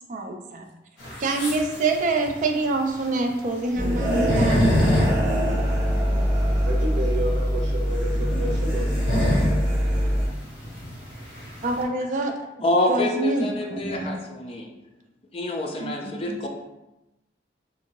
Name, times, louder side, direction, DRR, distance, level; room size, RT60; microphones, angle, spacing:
voice 1, 0.1-0.6 1.2-4.7 11.6-12.3 12.9-14.2 15.8-16.5, right 2 dB, 45° right, 4 dB, 0.3 m, -26 dB
sound 1, 1.0-11.8, left 1 dB, 70° left, 1.4 m, -27 dB
sound 2, 3.8-10.3, equal, 25° right, 1.1 m, -23 dB
voice 2, 6.6-9.4, right 1 dB, 75° right, -2 dB, 0.6 m, -31 dB
voice 3, 12.6-14.7 15.3-16.5, left 1 dB, 30° left, 1 dB, 0.3 m, -26 dB
2.7 x 2.5 x 2.9 m, 0.97 s
head